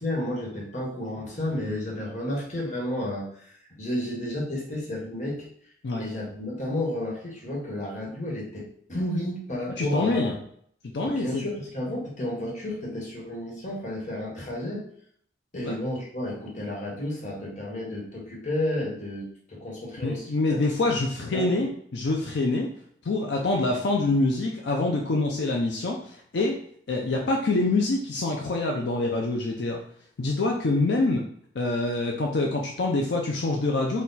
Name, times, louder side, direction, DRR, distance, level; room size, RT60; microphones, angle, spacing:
voice 1, 0.0-5.4 6.0-10.4 11.0-14.8 15.5-20.6 21.3-21.6, left 1 dB, 45° left, -2 dB, 1.3 m, -32 dB
voice 2, 9.7-10.3 10.9-11.4 15.6-15.8 20.0-22.7 23.0-26.6 26.9-29.8 30.2-31.2 31.6-34.0, left 2 dB, 75° left, 0 dB, 0.5 m, -25 dB
4.2 x 2.3 x 4.0 m, 0.63 s
head